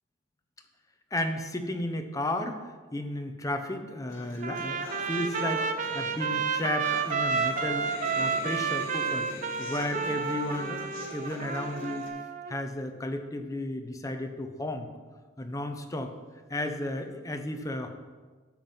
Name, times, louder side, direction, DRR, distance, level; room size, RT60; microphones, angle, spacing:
voice 1, 1.1-7.9 8.2-9.3 9.6-12.1 12.5-14.9 15.4-16.1 16.5-17.9, left 1 dB, 15° left, 5 dB, 0.8 m, -33 dB
sound 1, 4.1-12.1, left 1 dB, 75° left, 2.2 m, -44 dB
Trumpet, 4.4-12.5, right 5 dB, 40° right, 0.6 m, -31 dB
9.2 x 7.6 x 5.6 m, 1.4 s
head